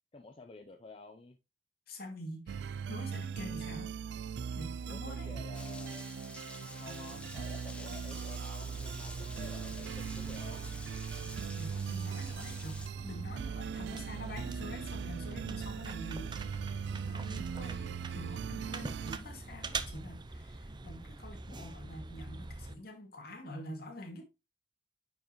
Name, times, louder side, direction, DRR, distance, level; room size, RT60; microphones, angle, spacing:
voice 1, 0.1-1.4 4.8-6.0 6.7-10.7, left 3 dB, 35° left, 0.6 m, -51 dB
voice 2, 1.9-3.9 4.6-5.3 11.6-16.4 16.6-24.2, left 1 dB, 60° left, 2.3 m, -46 dB
sound 1, 2.5-19.2, right 6 dB, 70° right, 0.3 m, -40 dB
Rain, 5.5-12.9, left 1 dB, 5° left, 0.9 m, -49 dB
sound 2, 8.7-22.7, right 3 dB, 25° right, 0.6 m, -45 dB
9.7 x 4.7 x 3.1 m
head